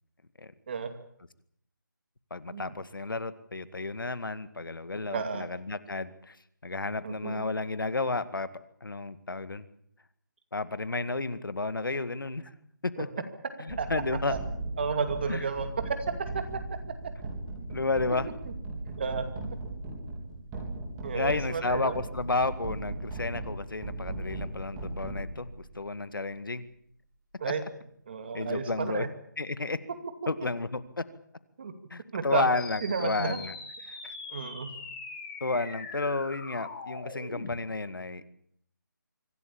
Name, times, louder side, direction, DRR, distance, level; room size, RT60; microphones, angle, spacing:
voice 1, 2.3-6.4 6.6-8.5 8.8-9.7 10.5-12.5 12.8-13.1 13.6-14.4 15.3-15.4 17.7-18.3 21.1-25.5 25.7-26.6 28.3-29.1 29.4-29.8 30.3-31.0 31.9-33.6 33.9-34.1 35.4-38.2, left 3 dB, 85° left, 13 dB, 2.1 m, -32 dB
voice 2, 5.1-5.5 7.0-7.4 13.8-13.9 14.3-14.4 14.8-16.4 18.4-18.5 19.0-19.2 21.0-22.0 27.4-27.6 28.1-29.1 31.6-31.7 32.1-32.4 32.8-33.4 34.3-34.7, right 5 dB, 30° right, 7 dB, 2.5 m, -32 dB
sound 1, 13.7-25.8, right 2 dB, 10° right, 4.0 m, -38 dB
sound 2, 32.5-37.6, left 3 dB, 25° left, 6.3 m, -42 dB
25.0 x 16.5 x 8.7 m, 0.69 s
figure-of-eight pair, 170°, 11 cm